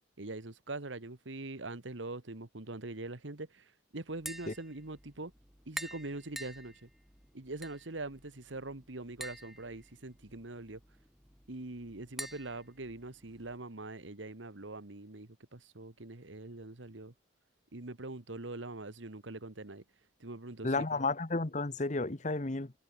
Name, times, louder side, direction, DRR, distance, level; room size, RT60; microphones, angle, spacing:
voice 1, 0.2-5.3 5.7-6.9 7.3-10.8 11.5-17.1 17.7-19.8 20.2-21.0, right 2 dB, 75° right, 1.7 m, -43 dB
Tap, 4.1-13.6, equal, ahead, 1.7 m, -49 dB
voice 2, 20.6-22.7, left 3 dB, 40° left, 1.1 m, -32 dB
head